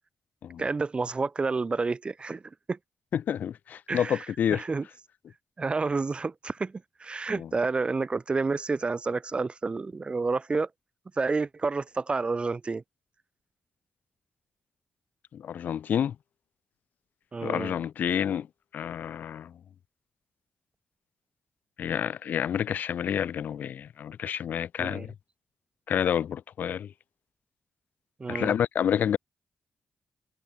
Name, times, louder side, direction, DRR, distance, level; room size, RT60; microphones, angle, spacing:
voice 1, 0.6-2.4 2.7-2.8 3.9-4.3 4.5-4.9 5.6-10.7 11.2-12.8 17.3-17.8 24.8-25.1 28.2-28.5, right 4 dB, 35° right, 0.6 m, -29 dB
voice 2, 3.1-4.6 7.4-7.5 15.3-16.1 17.4-18.5 18.7-19.5 21.8-25.1 25.9-26.9 28.3-29.2, left 9 dB, 75° left, 0.4 m, -29 dB
cardioid pair, 55°, 3 cm